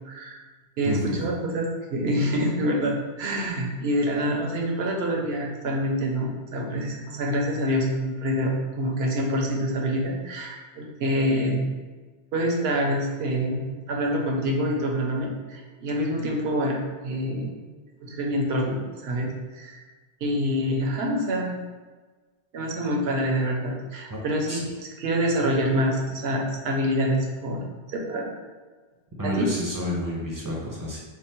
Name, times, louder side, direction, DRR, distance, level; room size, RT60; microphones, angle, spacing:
voice 1, 0.1-0.4 0.8-11.7 12.3-16.8 17.0-17.6 18.0-19.8 20.2-21.5 22.5-24.6 25.0-27.6 27.9-28.3 29.2-29.5, equal, 75° right, 0 dB, 0.9 m, -26 dB
voice 2, 0.8-1.1 24.1-24.2 24.5-24.6 29.2-31.0, equal, 20° right, -4 dB, 0.7 m, -30 dB
3.6 x 2.0 x 4.3 m, 1.3 s
omnidirectional pair, 1.1 m